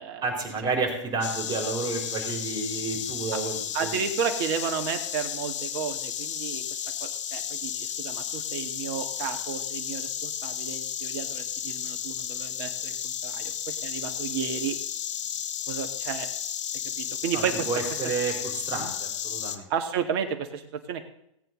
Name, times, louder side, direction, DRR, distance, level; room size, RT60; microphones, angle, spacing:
voice 1, 0.2-3.6 3.8-4.0 17.3-19.7, right 4 dB, 25° right, 2 dB, 4.2 m, -30 dB
Insect, 1.2-19.6, left 9 dB, 65° left, 1.1 m, -33 dB
voice 2, 3.7-6.6 7.0-14.8 15.7-16.3 17.0-17.7 18.7-18.9 19.7-21.1, right 7 dB, 50° right, 7 dB, 2.0 m, -32 dB
17.5 x 9.2 x 3.9 m, 0.76 s
hypercardioid pair, 110°, 17 cm